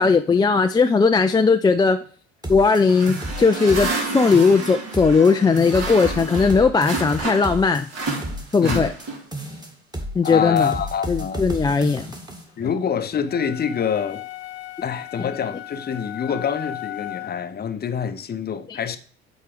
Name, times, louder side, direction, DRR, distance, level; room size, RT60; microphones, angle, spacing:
voice 1, 0.0-2.0 2.5-7.8 8.5-8.9 10.1-10.7 11.1-12.1 18.7-18.8, left 4 dB, 15° left, 0.4 m, -18 dB
sound 1, 2.4-4.1 4.3-5.3 5.6-9.1 9.3-10.3 10.6-12.4, right 1 dB, 10° right, 2.0 m, -32 dB
sound 2, 2.9-7.6 7.9-9.4, right 3 dB, 50° right, 2.5 m, -30 dB
voice 2, 8.6-8.9 10.2-11.4 12.6-14.3 14.8-19.0, left 7 dB, 30° left, 0.8 m, -26 dB
sound 3, 13.3-17.5, left 13 dB, 85° left, 0.7 m, -36 dB
6.8 x 4.4 x 4.9 m
hypercardioid pair, 65°, 32 cm